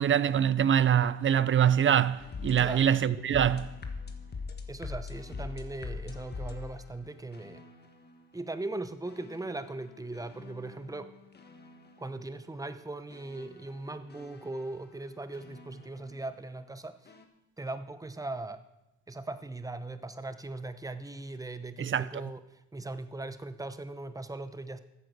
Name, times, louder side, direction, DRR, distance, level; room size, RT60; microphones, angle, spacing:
voice 1, 0.0-3.8 21.8-22.1, right 9 dB, 40° right, 0.5 m, -24 dB
sound 1, 2.2-8.2 9.1-12.3 13.1-16.2 17.1-17.2, left 4 dB, 35° left, 1.5 m, -43 dB
voice 2, 4.7-7.6 8.3-11.1 12.0-17.0 17.6-18.6 19.1-24.8, right 2 dB, 10° right, 0.9 m, -39 dB
13.5 x 7.7 x 6.6 m
cardioid pair, 90°, 30 cm